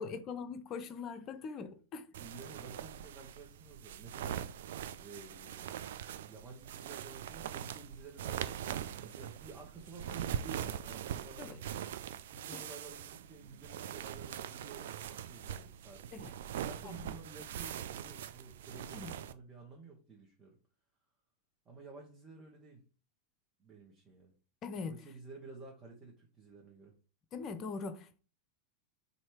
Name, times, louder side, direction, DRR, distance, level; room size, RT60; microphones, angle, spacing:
voice 1, 0.0-2.0 11.4-11.6 12.5-12.6 16.1-16.3 16.8-17.0 18.9-19.1 24.6-25.0 27.3-28.2, left 5 dB, 30° left, 0.6 m, -42 dB
voice 2, 2.1-4.6 5.0-6.0 6.3-11.7 12.3-16.3 16.5-20.6 21.6-22.8 23.6-24.3 24.9-26.9, right 3 dB, 20° right, 1.0 m, -52 dB
sound 1, 2.1-19.3, right 10 dB, 55° right, 0.3 m, -42 dB
4.3 x 2.7 x 4.6 m
figure-of-eight pair, 90°, 0 cm